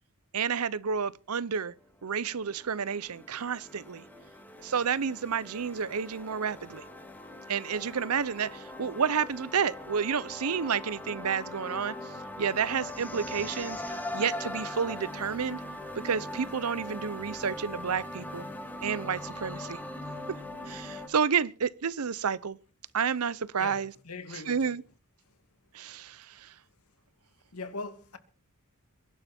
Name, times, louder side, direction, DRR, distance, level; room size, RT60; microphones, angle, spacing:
voice 1, 0.3-1.7 2.0-4.0 4.6-6.8 7.5-11.9 12.4-13.8 14.1-15.6 15.9-18.5 18.8-19.8 20.7-22.6 22.9-23.9 24.3-24.8 25.7-26.5, right 6 dB, 75° right, 0.7 m, -30 dB
sound 1, 1.8-21.1, left 1 dB, 10° left, 2.7 m, -41 dB
voice 2, 23.6-24.8 27.5-28.2, left 3 dB, 80° left, 2.4 m, -40 dB
23.0 x 11.5 x 4.4 m
head